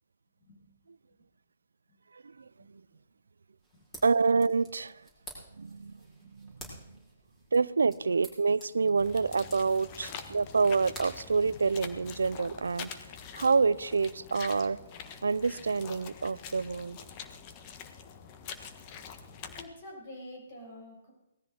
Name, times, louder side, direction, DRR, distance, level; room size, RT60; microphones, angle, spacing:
voice 1, 2.1-2.8 4.0-5.1 5.5-5.9 6.3-7.0 7.5-12.9 13.3-14.8 15.2-17.0, right 4 dB, 85° right, 20 dB, 0.5 m, -27 dB
sound 1, 3.6-12.2, right 1 dB, 10° left, 5.5 m, -52 dB
sound 2, 9.0-19.7, left 7 dB, 35° left, 1.4 m, -45 dB
voice 2, 19.5-21.1, left 1 dB, 50° left, -1 dB, 7.8 m, -48 dB
18.5 x 14.0 x 4.3 m, 0.87 s
hypercardioid pair, 135°, 0 cm